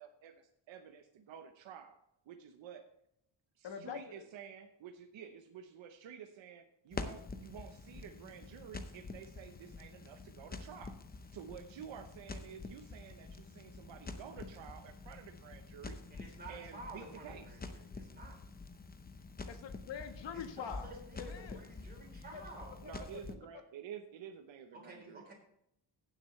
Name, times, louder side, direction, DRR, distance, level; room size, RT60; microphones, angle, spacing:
voice 1, 0.0-2.0 2.3-2.8 3.6-11.0 11.3-16.0 16.5-17.6 22.8-25.3, right 8 dB, 70° right, 5 dB, 0.9 m, -51 dB
voice 2, 3.6-4.3 19.5-21.7 22.3-22.4 22.8-23.2, left 7 dB, 60° left, 6 dB, 1.5 m, -45 dB
Crackle, 6.9-23.4, left 3 dB, 20° left, 0.7 m, -47 dB
voice 3, 16.1-18.4 20.3-22.8 24.7-25.3, right 2 dB, 20° right, -2 dB, 3.8 m, -51 dB
16.0 x 7.8 x 3.2 m, 0.78 s
cardioid pair, 145°, 48 cm